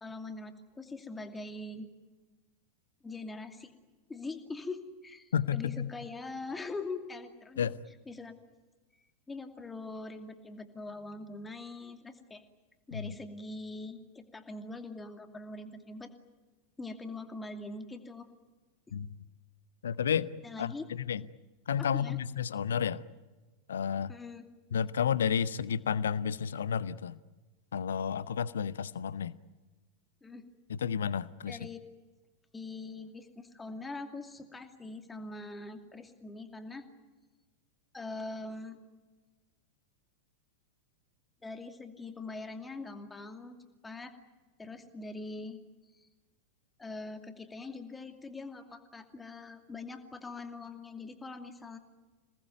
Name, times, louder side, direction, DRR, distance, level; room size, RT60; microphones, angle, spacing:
voice 1, 0.0-1.9 3.0-3.7 4.1-7.7 8.1-8.3 9.3-12.4 12.9-16.1 16.8-18.3 20.4-20.8 21.8-22.2 24.1-24.5 30.2-30.5 31.5-31.8 32.5-36.9 37.9-38.8 41.4-43.6 43.8-44.1 44.6-45.6 45.9-46.1 46.8-51.8, left 3 dB, 10° left, 6 dB, 2.5 m, -42 dB
voice 2, 5.3-5.9 7.6-7.8 12.9-13.1 18.9-19.1 19.8-20.3 20.6-20.7 21.1-21.2 21.7-23.0 23.7-24.1 24.7-27.2 27.7-29.4 30.7-31.6, left 8 dB, 65° left, 17 dB, 0.9 m, -31 dB
27.5 x 19.5 x 9.3 m, 1.2 s
figure-of-eight pair, 90°, 0 cm